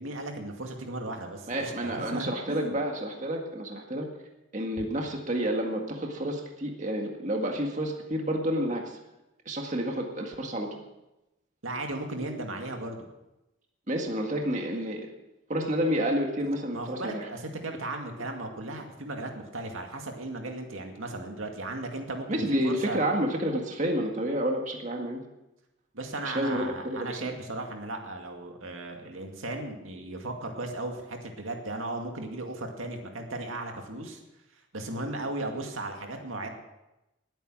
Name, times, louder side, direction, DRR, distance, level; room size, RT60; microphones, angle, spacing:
voice 1, 0.0-2.8 11.6-13.1 16.7-23.0 25.9-34.2 34.7-36.5, right 2 dB, 85° right, 3 dB, 2.3 m, -36 dB
voice 2, 1.5-4.1 4.5-9.0 9.4-10.8 13.9-15.1 15.5-17.3 22.3-25.2 26.2-27.3, equal, 35° right, 1 dB, 1.9 m, -30 dB
20.0 x 9.1 x 6.3 m, 0.96 s
head